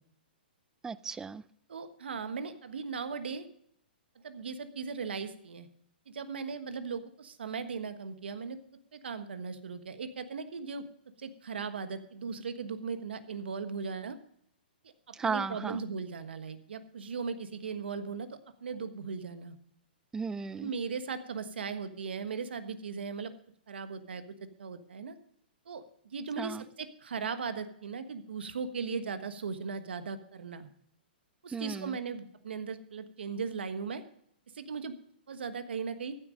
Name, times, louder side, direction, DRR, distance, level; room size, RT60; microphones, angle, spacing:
voice 1, 0.8-1.4 15.1-15.8 20.1-20.7 26.4-26.6 31.5-32.0, right 5 dB, 10° right, 19 dB, 0.4 m, -35 dB
voice 2, 1.7-3.5 4.2-5.7 6.1-8.6 8.9-10.8 11.2-14.2 15.2-19.5 20.6-23.3 23.7-24.2 24.6-25.1 25.7-25.8 26.1-30.7 31.4-34.0 34.5-34.9 35.3-36.2, right 5 dB, 80° right, 10 dB, 1.4 m, -38 dB
14.5 x 8.7 x 5.2 m, 0.69 s
hypercardioid pair, 135°, 6 cm